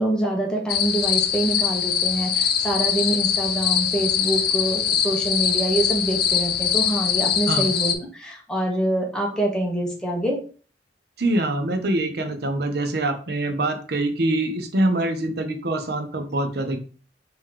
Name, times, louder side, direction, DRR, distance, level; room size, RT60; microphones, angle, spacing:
voice 1, 0.0-10.4, right 1 dB, 5° left, -1 dB, 1.1 m, -25 dB
sound 1, 0.7-7.9, left 8 dB, 60° left, 0.6 m, -23 dB
voice 2, 11.2-16.8, right 1 dB, 60° right, 6 dB, 0.7 m, -24 dB
3.7 x 3.0 x 4.7 m, 0.40 s
head